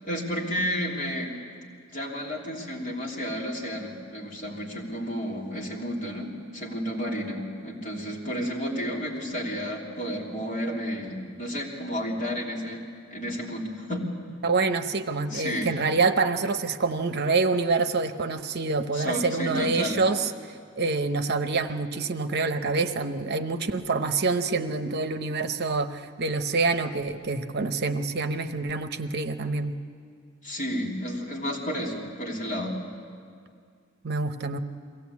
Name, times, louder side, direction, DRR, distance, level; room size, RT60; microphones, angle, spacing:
voice 1, 0.1-1.4 1.9-12.8 13.1-14.1 15.3-15.7 18.9-20.0 30.4-32.8, equal, 40° left, -3 dB, 3.3 m, -31 dB
voice 2, 14.4-20.3 20.8-29.7 34.0-34.6, right 3 dB, 55° right, 9 dB, 0.8 m, -26 dB
22.5 x 16.5 x 8.4 m, 2.2 s
head